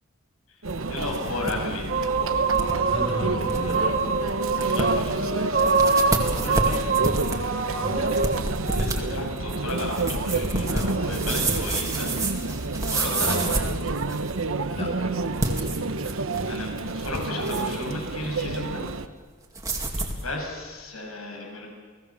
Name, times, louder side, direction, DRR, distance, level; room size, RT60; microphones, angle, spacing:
Conversation / Chatter / Crowd, 0.6-19.1, right 3 dB, 70° right, 1.0 m, -29 dB
sound 1, 0.7-1.5 1.9-2.0 2.5-2.8 3.2-3.3 3.5-3.8 4.3-4.4 4.6-5.1 5.6-14.4 15.3-16.5 16.9-17.8 19.5-20.2, right 2 dB, 15° right, 2.3 m, -29 dB
voice 1, 0.9-1.9 4.5-5.5 6.3-7.0 8.6-12.1 12.8-13.5 16.5-18.8 20.2-21.7, left 2 dB, 85° left, 1 dB, 6.6 m, -34 dB
sound 2, 1.9-8.4, right 4 dB, 50° right, 2.1 m, -25 dB
voice 2, 2.9-4.2 7.8-8.1 13.2-13.5 14.8-15.2, equal, 30° left, 0 dB, 6.0 m, -32 dB
29.5 x 18.0 x 7.3 m, 1.5 s
head